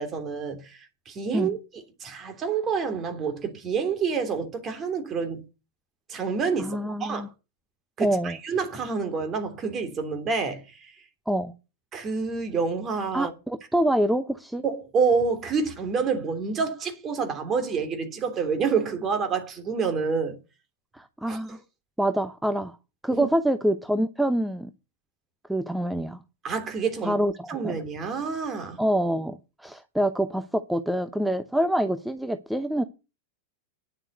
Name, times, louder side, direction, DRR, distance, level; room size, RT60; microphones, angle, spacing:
voice 1, 0.0-5.4 6.1-7.3 8.0-10.9 11.9-13.3 14.6-20.4 21.3-21.6 23.1-23.3 26.4-27.2 27.5-28.8, right 5 dB, 25° right, 3.2 m, -28 dB
voice 2, 6.6-7.3 8.0-8.4 11.3-11.5 13.1-14.6 20.9-21.6 22.0-22.8 23.0-24.7 25.5-26.2 27.0-27.7 28.8-32.8, right 1 dB, 5° right, 0.8 m, -26 dB
10.5 x 7.3 x 8.1 m
figure-of-eight pair, 90°, 0 cm